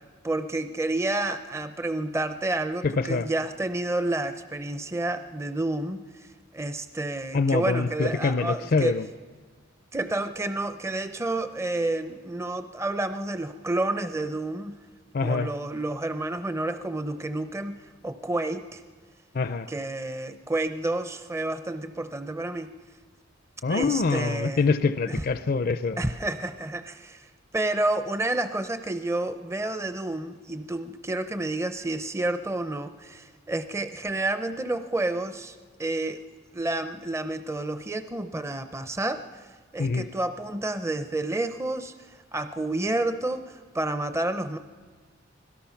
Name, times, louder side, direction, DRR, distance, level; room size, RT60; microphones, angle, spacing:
voice 1, 0.2-6.3 6.5-9.0 9.9-14.8 15.2-18.8 19.7-22.7 23.7-24.6 25.1-25.2 26.0-36.2 36.5-39.5 39.7-44.6, right 2 dB, 15° right, 9 dB, 0.6 m, -30 dB
voice 2, 2.8-3.3 7.3-9.1 15.1-15.5 19.3-19.7 23.6-26.0 39.8-40.1, left 4 dB, 50° left, 11 dB, 0.5 m, -25 dB
25.5 x 17.5 x 5.8 m, 1.5 s
head